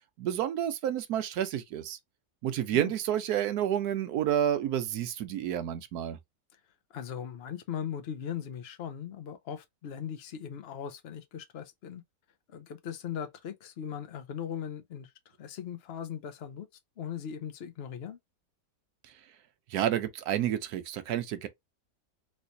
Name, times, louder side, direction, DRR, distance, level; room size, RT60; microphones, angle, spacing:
voice 1, 0.2-2.0 2.4-6.2 19.7-21.5, right 10 dB, 70° right, 1.0 m, -30 dB
voice 2, 6.9-12.0 12.5-15.1 15.4-16.7 17.0-18.2, left 8 dB, 65° left, 0.6 m, -39 dB
3.2 x 3.1 x 2.6 m
omnidirectional pair, 1.9 m